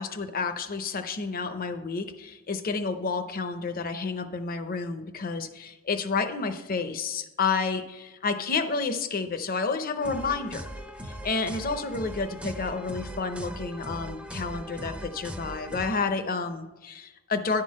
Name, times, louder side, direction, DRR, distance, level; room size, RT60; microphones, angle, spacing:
voice 1, 0.0-10.6 11.0-17.6, left 4 dB, 45° left, 8 dB, 0.7 m, -30 dB
sound 1, 10.0-15.9, right 1 dB, 5° right, 0.5 m, -39 dB
10.5 x 3.8 x 6.3 m, 1.1 s
head